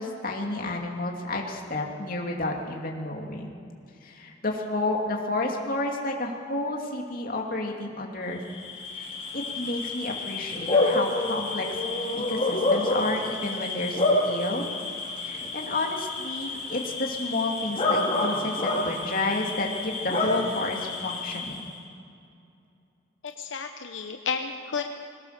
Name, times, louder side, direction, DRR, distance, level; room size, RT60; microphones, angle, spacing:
voice 1, 0.0-3.5 4.0-8.4 8.9-11.7 12.1-14.7 15.2-21.7, left 2 dB, 50° left, 0 dB, 2.7 m, -31 dB
Bark / Cricket, 8.4-21.7, left 2 dB, 30° left, 4.2 m, -28 dB
voice 2, 23.2-24.8, left 5 dB, 90° left, 5 dB, 1.0 m, -32 dB
22.0 x 18.5 x 6.8 m, 2.4 s
head